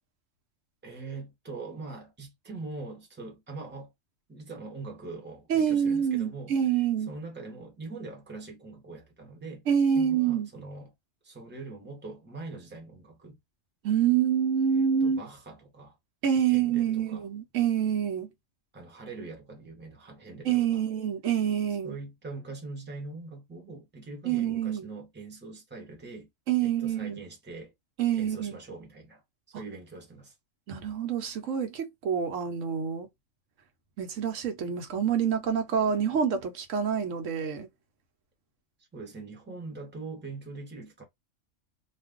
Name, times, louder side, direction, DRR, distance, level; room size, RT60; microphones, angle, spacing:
voice 1, 0.8-3.9 4.3-6.6 7.1-9.6 9.9-10.9 11.2-13.4 14.7-16.0 16.5-17.2 18.7-20.8 21.8-26.3 26.6-27.7 28.1-29.2 29.5-30.3 38.9-41.0, right 3 dB, 10° right, 0.8 m, -42 dB
voice 2, 5.5-7.1 9.7-10.5 13.8-15.2 16.2-18.3 20.4-22.0 24.2-24.9 26.5-27.2 28.0-28.6 29.5-29.6 30.7-33.1 34.0-37.7, right 8 dB, 75° right, 1.1 m, -27 dB
2.5 x 2.3 x 3.5 m
omnidirectional pair, 1.3 m